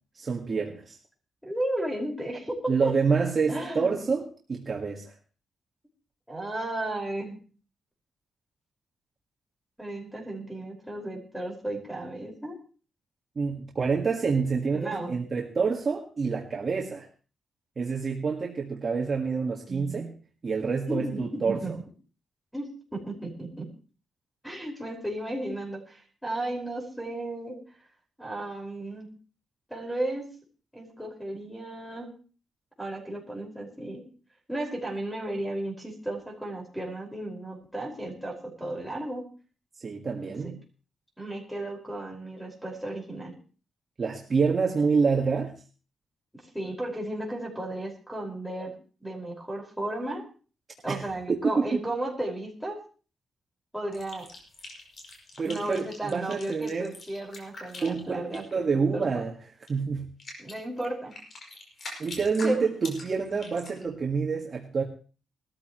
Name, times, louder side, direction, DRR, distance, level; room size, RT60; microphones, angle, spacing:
voice 1, 0.2-1.0 2.7-4.2 4.5-5.1 13.4-17.1 17.8-20.1 20.4-21.6 39.8-40.6 44.0-45.5 50.9-51.0 51.3-51.8 55.4-56.9 57.8-59.3 59.7-60.1 62.0-64.8, right 5 dB, 40° right, -1 dB, 1.8 m, -27 dB
voice 2, 1.4-2.9 3.5-3.9 6.3-7.4 9.8-12.6 14.7-15.1 19.7-20.1 20.9-21.7 22.5-23.7 24.4-27.6 28.2-29.1 29.7-30.3 30.7-32.1 32.8-34.0 34.5-39.2 40.2-40.3 41.2-43.3 46.5-48.7 49.0-50.2 50.8-52.8 53.7-54.3 55.4-59.1 60.4-61.1 62.4-62.7, right 1 dB, ahead, -3 dB, 5.3 m, -34 dB
sound 1, 53.9-58.6 59.6-59.7 60.2-63.8, left 2 dB, 50° left, 6.0 m, -43 dB
21.0 x 13.5 x 3.1 m, 0.37 s
cardioid pair, 120°, 0 cm